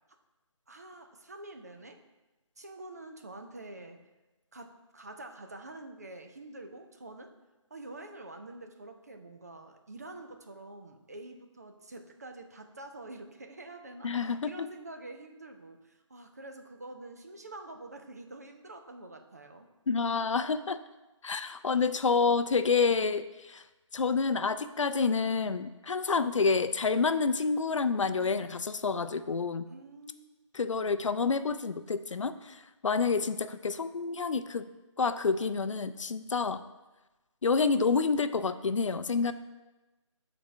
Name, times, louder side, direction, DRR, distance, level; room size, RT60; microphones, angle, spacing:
voice 1, 0.7-2.0 2.6-4.0 4.5-7.3 7.7-19.7 29.7-30.4, right 2 dB, 30° right, 5 dB, 0.5 m, -47 dB
voice 2, 14.0-14.7 19.9-20.8 21.2-23.6 23.9-29.7 30.5-32.6 32.8-34.7 35.0-36.6 37.4-39.3, left 4 dB, 70° left, 11 dB, 0.5 m, -28 dB
5.3 x 4.2 x 5.9 m, 1.1 s
figure-of-eight pair, 170°, 17 cm